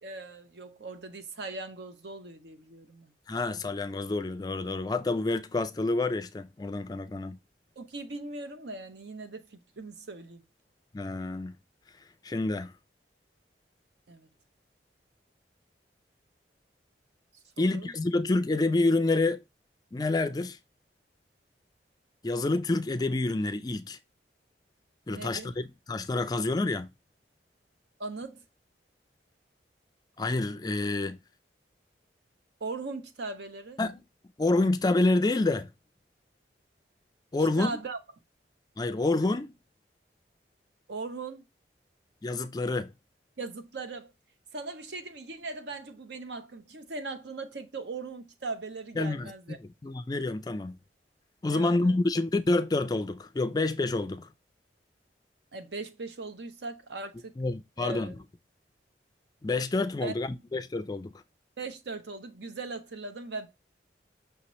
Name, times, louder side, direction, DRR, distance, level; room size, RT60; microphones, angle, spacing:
voice 1, 0.0-3.1 7.8-10.4 14.1-14.3 17.6-17.9 25.1-25.5 28.0-28.4 32.6-33.8 37.6-38.0 40.9-41.4 43.4-44.1 44.5-49.6 51.5-52.0 55.5-57.3 57.8-58.2 60.0-60.1 61.6-63.5, right 3 dB, 75° right, 0.8 m, -39 dB
voice 2, 3.3-7.4 10.9-11.5 12.2-12.7 17.6-19.4 19.9-20.6 22.2-24.0 25.1-26.9 30.2-31.2 33.8-34.0 34.4-35.7 37.3-37.8 38.8-39.5 42.2-42.9 49.0-50.8 51.4-54.3 57.4-58.1 59.4-61.1, left 2 dB, 20° left, 0.3 m, -28 dB
5.7 x 2.9 x 3.0 m
head